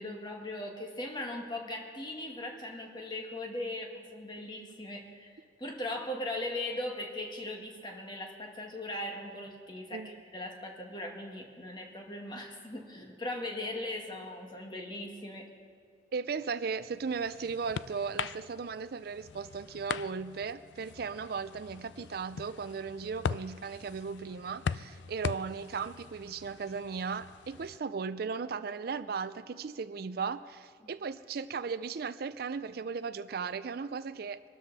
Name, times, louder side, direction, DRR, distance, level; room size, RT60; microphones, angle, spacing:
voice 1, 0.0-15.5, left 1 dB, 25° left, 2 dB, 1.9 m, -39 dB
voice 2, 16.1-34.4, right 5 dB, 60° right, 14 dB, 0.4 m, -36 dB
sound 1, 16.7-27.8, left 6 dB, 85° left, 0.4 m, -41 dB
23.5 x 13.0 x 4.1 m, 2.2 s
head